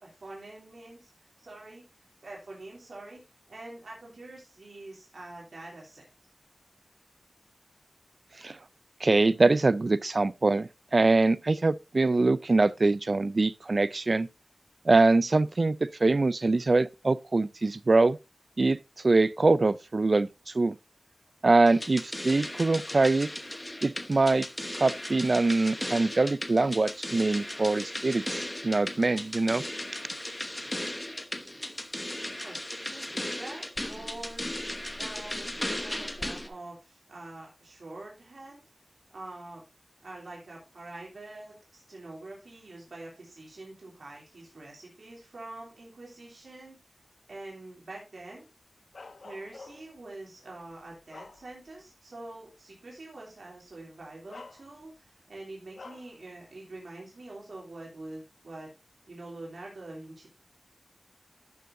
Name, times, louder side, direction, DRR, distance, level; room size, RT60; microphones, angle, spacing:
voice 1, 0.0-1.8 2.2-3.2 3.5-6.1 32.4-34.4 35.0-38.6 39.1-39.6 40.0-46.8 47.3-48.4 49.2-58.7 59.1-60.3, right 2 dB, 80° right, 3.0 m, -45 dB
voice 2, 9.0-14.3 14.9-18.2 18.6-18.8 19.0-20.7 21.4-23.3 23.8-24.5 24.7-29.6, right 3 dB, 50° right, 0.4 m, -24 dB
sound 1, 21.7-36.5, left 1 dB, 20° left, 1.0 m, -36 dB
Bark, 48.9-50.0 50.6-51.9 52.3-52.5 53.6-53.7 54.3-55.1 55.7-56.2, left 3 dB, 90° left, 0.9 m, -48 dB
11.5 x 6.8 x 2.6 m
wide cardioid pair, 80°, 0 cm